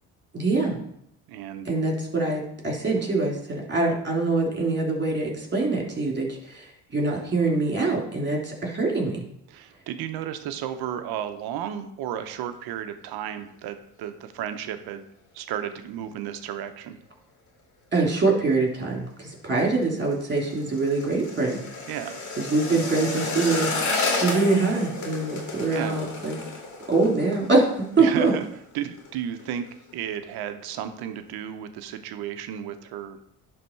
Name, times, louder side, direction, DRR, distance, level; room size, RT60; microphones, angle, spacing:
voice 1, 0.3-0.8 1.6-9.2 17.9-21.6 22.4-23.7 24.2-26.4 26.9-28.3, right 3 dB, 25° right, -1 dB, 3.1 m, -24 dB
voice 2, 1.3-1.7 9.5-15.1 15.3-17.0 21.9-22.2 25.7-26.0 28.0-28.4 28.7-29.7 29.9-33.2, right 10 dB, 70° right, 9 dB, 0.9 m, -33 dB
sound 1, 19.5-28.5 28.8-29.1 29.4-29.9 30.3-30.4, left 3 dB, 50° left, 2.2 m, -32 dB
11.0 x 3.6 x 4.5 m, 0.75 s
supercardioid pair, 75°, 39 cm